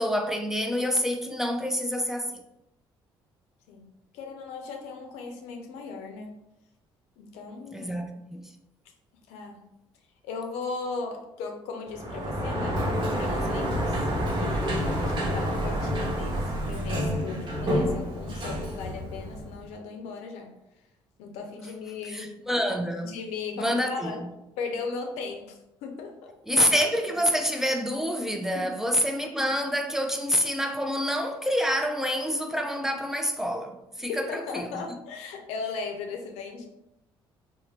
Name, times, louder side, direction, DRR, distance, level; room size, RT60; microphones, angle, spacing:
voice 1, 0.0-2.3 7.7-8.4 22.1-23.1 23.6-24.1 26.5-34.7, equal, 5° right, 0.4 m, -27 dB
voice 2, 4.1-6.4 7.2-7.9 9.3-9.7 10.2-14.0 14.4-20.5 21.2-22.3 23.0-24.2 24.6-26.7 27.0-27.1 28.5-28.9 34.0-36.7, left 4 dB, 85° left, 0.5 m, -37 dB
Sliding door, 11.9-19.7, equal, 45° right, 0.9 m, -28 dB
2.7 x 2.0 x 3.1 m
supercardioid pair, 70°, 11 cm